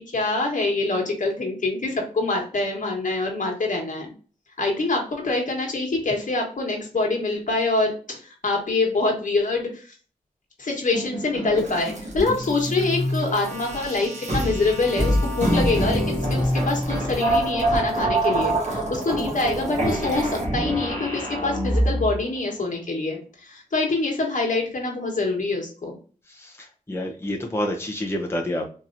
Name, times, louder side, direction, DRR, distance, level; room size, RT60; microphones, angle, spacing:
voice 1, 0.0-4.1 4.6-9.9 10.6-25.9, left 3 dB, 65° left, 1 dB, 1.4 m, -25 dB
sound 1, 10.9-22.2, right 1 dB, 55° right, 1.5 m, -25 dB
voice 2, 26.3-28.7, left 1 dB, 15° left, 0 dB, 0.8 m, -28 dB
4.2 x 3.0 x 2.5 m, 0.39 s
wide cardioid pair, 80°, 14 cm